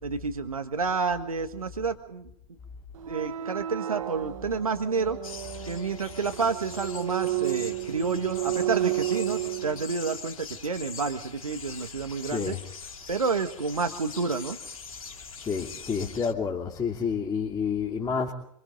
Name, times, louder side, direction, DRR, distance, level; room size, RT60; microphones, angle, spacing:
voice 1, 0.0-2.3 3.1-5.2 5.6-12.6 13.1-14.6, right 4 dB, 90° right, 1.5 m, -29 dB
sound 1, 2.9-9.9, right 14 dB, 75° right, 1.4 m, -32 dB
sound 2, 5.2-16.3, left 5 dB, 80° left, 2.8 m, -43 dB
voice 2, 15.4-18.3, left 6 dB, 20° left, 2.9 m, -29 dB
26.5 x 25.5 x 3.9 m
hypercardioid pair, 95°, 18 cm